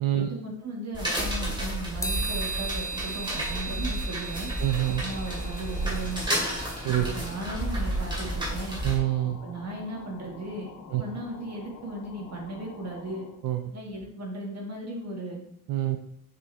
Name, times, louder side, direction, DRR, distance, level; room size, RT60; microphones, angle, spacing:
voice 1, 0.2-4.5 5.0-6.5 6.9-8.8 9.4-10.7 11.0-13.3 13.7-15.4, right 1 dB, 50° right, 0 dB, 1.9 m, -36 dB
sound 1, 0.9-9.0, right 1 dB, 15° right, 2.3 m, -31 dB
sound 2, 2.0-7.3, right 3 dB, 10° left, 0.8 m, -37 dB
sound 3, 4.6-13.4, left 5 dB, 70° left, 1.0 m, -47 dB
voice 2, 4.6-5.0 6.8-7.1 8.8-9.4 10.9-11.0 13.4-13.6 15.7-16.0, right 13 dB, 80° right, 6 dB, 0.6 m, -26 dB
7.0 x 5.4 x 3.4 m, 0.73 s
wide cardioid pair, 170°, 33 cm